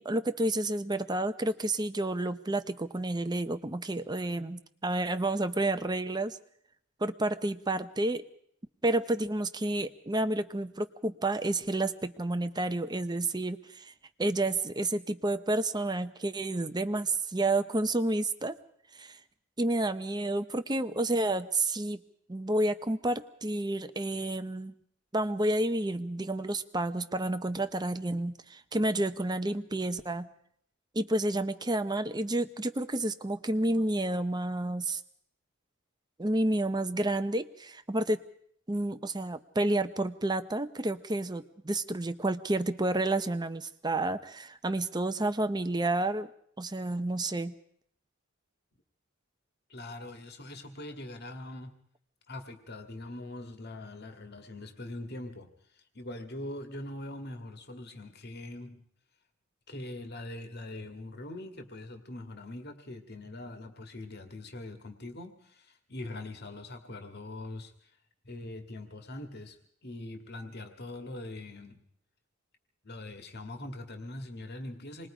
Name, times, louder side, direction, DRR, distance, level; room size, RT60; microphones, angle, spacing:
voice 1, 0.0-6.4 7.0-8.2 8.8-13.9 14.2-18.6 19.0-19.2 19.6-22.0 22.3-24.7 25.1-30.3 30.9-35.0 36.2-38.2 38.7-46.3 46.6-47.5, right 2 dB, 20° right, 10 dB, 0.8 m, -30 dB
voice 2, 49.7-51.7 52.3-58.8 59.7-67.9 68.2-69.6 69.8-71.8 72.8-75.1, left 1 dB, 45° left, 6 dB, 2.0 m, -42 dB
27.0 x 21.0 x 5.1 m, 0.68 s
head